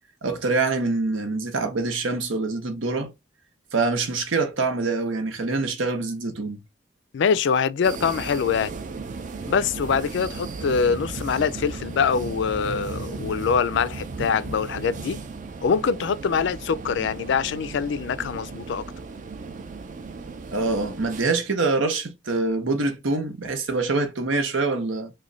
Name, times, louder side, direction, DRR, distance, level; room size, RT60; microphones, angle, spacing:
voice 1, 0.2-3.1 3.7-6.6 20.5-25.1, right 3 dB, 85° right, 0.8 m, -25 dB
voice 2, 7.1-8.7 9.5-15.2 15.6-18.8, left 6 dB, 65° left, 0.3 m, -24 dB
sound 1, 7.8-21.2, right 4 dB, 40° right, 0.4 m, -36 dB
3.0 x 2.2 x 3.8 m
head